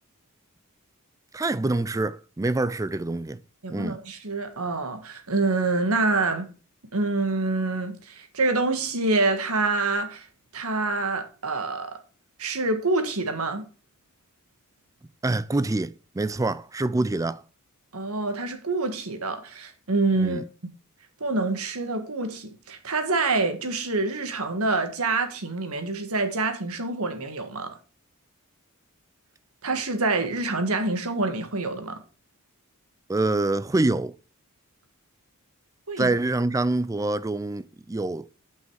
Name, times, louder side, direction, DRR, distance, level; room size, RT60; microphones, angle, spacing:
voice 1, 1.3-3.4 3.7-4.0 15.2-17.4 20.2-20.4 33.1-34.1 36.0-38.2, right 2 dB, 15° right, 0.4 m, -26 dB
voice 2, 3.6-6.5 6.9-10.3 10.5-12.0 12.4-13.6 17.9-20.4 21.2-27.8 29.6-32.0 35.9-36.1, right 3 dB, 70° right, 1.6 m, -26 dB
9.5 x 5.6 x 4.8 m
head